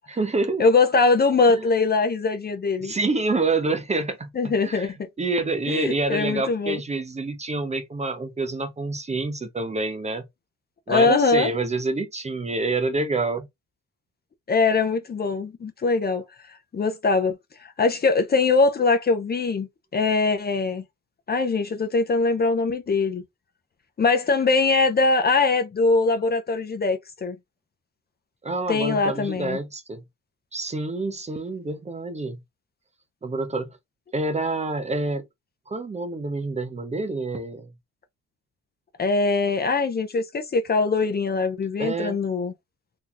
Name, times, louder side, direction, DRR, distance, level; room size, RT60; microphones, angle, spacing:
voice 1, 0.1-0.6 1.5-1.6 2.8-4.9 5.2-10.2 10.9-13.5 28.4-30.0 30.5-32.4 33.2-33.7 34.1-35.2 35.7-37.7 41.8-42.2, right 3 dB, 20° right, 0.7 m, -27 dB
voice 2, 0.6-2.9 4.4-5.0 5.7-6.8 10.9-11.5 14.5-16.2 16.7-20.8 21.3-23.2 24.0-27.4 28.7-29.6 39.0-42.5, left 4 dB, 30° left, 0.6 m, -22 dB
2.9 x 2.4 x 3.9 m
cardioid pair, 90°, 30 cm